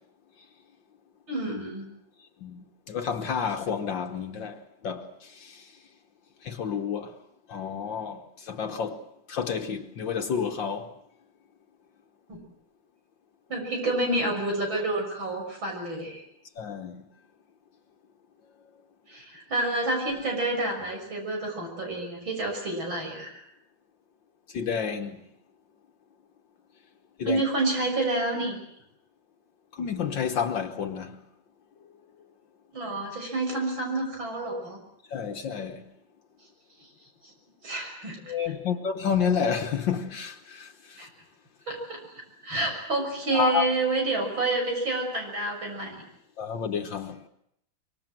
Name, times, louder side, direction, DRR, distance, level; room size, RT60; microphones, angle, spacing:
voice 1, 1.3-1.9 12.3-12.4 13.5-16.2 19.1-23.4 27.3-28.6 32.7-34.8 37.6-38.4 41.0-41.1 41.7-42.0 42.4-46.0, right 2 dB, 75° right, 7.4 m, -29 dB
voice 2, 2.4-5.7 6.4-7.1 7.5-9.0 9.3-10.9 16.6-17.0 24.5-25.2 27.2-27.4 29.8-31.2 35.1-35.8 38.3-41.1 43.3-43.7 46.4-47.2, left 7 dB, 70° left, 1.9 m, -30 dB
24.5 x 23.5 x 7.7 m
omnidirectional pair, 2.2 m